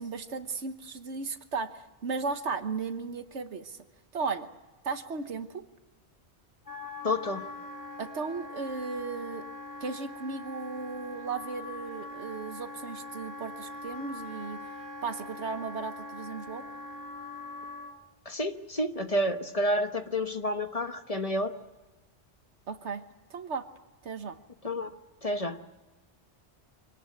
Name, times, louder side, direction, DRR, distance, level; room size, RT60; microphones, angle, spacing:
voice 1, 0.0-3.8 4.1-4.5 4.8-5.6 8.0-9.5 9.8-14.6 15.0-16.6 22.7-23.0 23.3-23.7 24.0-24.4, right 4 dB, 85° right, 10 dB, 1.5 m, -35 dB
Wind instrument woodwind instrument, 6.7-18.0, left 2 dB, 15° left, 2.4 m, -42 dB
voice 2, 7.0-7.5 18.2-21.5 24.6-24.9 25.2-25.6, left 1 dB, 35° left, 8 dB, 1.2 m, -30 dB
25.0 x 18.5 x 8.5 m, 1.2 s
omnidirectional pair, 1.1 m